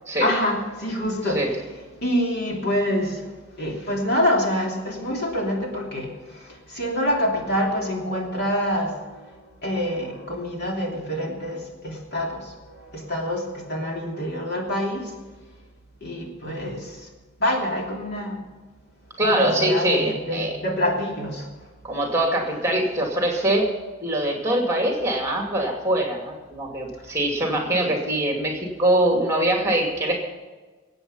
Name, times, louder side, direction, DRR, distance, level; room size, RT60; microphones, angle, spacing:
voice 1, 0.2-1.4 2.0-3.3 3.6-9.4 9.6-15.1 16.0-17.1 17.4-18.4 19.2-21.5, left 1 dB, 50° left, -1 dB, 3.1 m, -26 dB
voice 2, 19.2-20.5 21.8-23.7 24.0-30.2, right 1 dB, 15° right, 1 dB, 2.5 m, -23 dB
22.0 x 8.9 x 5.6 m, 1.3 s
head